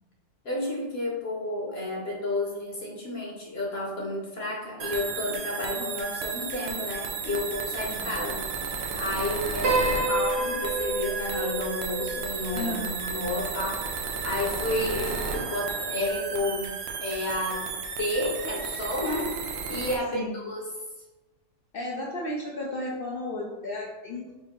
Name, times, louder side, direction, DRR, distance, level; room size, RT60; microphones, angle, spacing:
voice 1, 0.4-16.7 17.0-17.7 18.0-19.3 19.7-20.7, left 1 dB, 50° left, -2 dB, 1.0 m, -31 dB
sound 1, 4.8-20.0, right 5 dB, 70° right, 0.6 m, -33 dB
voice 2, 7.8-8.1 12.5-13.0 20.1-20.3 21.7-24.3, left 1 dB, 80° left, -2 dB, 0.5 m, -34 dB
Piano, 9.6-14.0, right 2 dB, 85° right, 1.6 m, -30 dB
4.5 x 2.6 x 3.6 m, 1.1 s
omnidirectional pair, 1.6 m